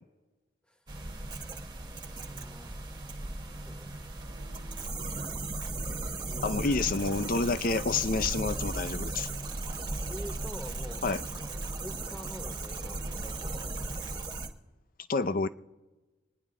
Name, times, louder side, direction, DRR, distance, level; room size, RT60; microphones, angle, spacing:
sound 1, 0.9-14.5, right 2 dB, 25° right, 1.1 m, -36 dB
voice 1, 2.0-2.9 3.4-3.9 6.1-7.1 10.1-11.1 11.3-14.0, equal, 5° left, 0.9 m, -47 dB
sound 2, 4.1-14.3, right 2 dB, 85° right, 1.3 m, -54 dB
voice 2, 6.4-9.3 11.0-11.2 15.1-15.5, left 3 dB, 50° left, 0.5 m, -28 dB
26.5 x 10.0 x 3.7 m
head